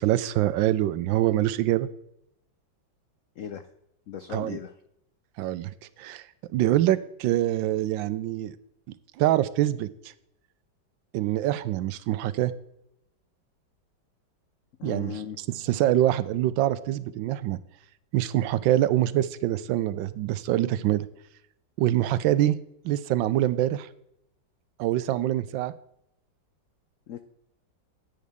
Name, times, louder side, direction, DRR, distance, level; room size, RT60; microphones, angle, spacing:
voice 1, 0.0-1.9 4.3-4.6 5.4-5.7 6.0-6.3 6.5-8.5 9.2-9.9 11.1-12.5 14.8-15.1 15.5-17.6 18.1-21.1 21.8-22.6 22.8-23.9 24.8-25.7, right 13 dB, 85° right, 16 dB, 1.3 m, -24 dB
voice 2, 3.4-3.7 4.1-4.8 14.8-15.4 27.1-27.2, left 8 dB, 90° left, 10 dB, 0.7 m, -37 dB
10.0 x 9.5 x 3.5 m, 0.78 s
omnidirectional pair, 2.0 m